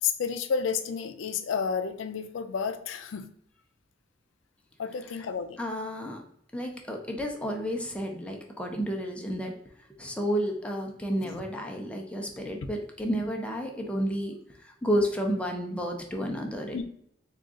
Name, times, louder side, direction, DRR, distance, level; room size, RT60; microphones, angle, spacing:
voice 1, 0.0-3.3 4.8-5.6 11.2-11.4 16.7-16.8, left 6 dB, 90° left, 10 dB, 0.4 m, -31 dB
voice 2, 5.6-6.2 6.5-9.6 10.0-16.8, equal, 5° left, 1 dB, 0.5 m, -31 dB
3.7 x 2.4 x 3.7 m, 0.69 s
head